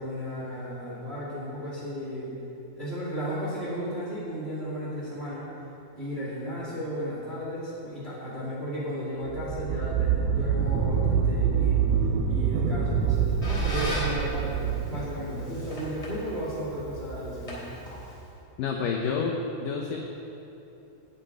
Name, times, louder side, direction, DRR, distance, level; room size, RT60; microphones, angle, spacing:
voice 1, 0.0-2.3 2.7-5.5 5.9-11.8 12.3-17.6, equal, 20° right, -6 dB, 1.6 m, -34 dB
sound 1, 9.3-15.7, right 7 dB, 90° right, 2.9 m, -26 dB
Squeak, 12.9-18.4, equal, 10° left, 2.2 m, -38 dB
voice 2, 18.6-20.0, left 5 dB, 80° left, 1 dB, 1.9 m, -29 dB
8.7 x 8.0 x 9.2 m, 2.9 s
omnidirectional pair, 4.8 m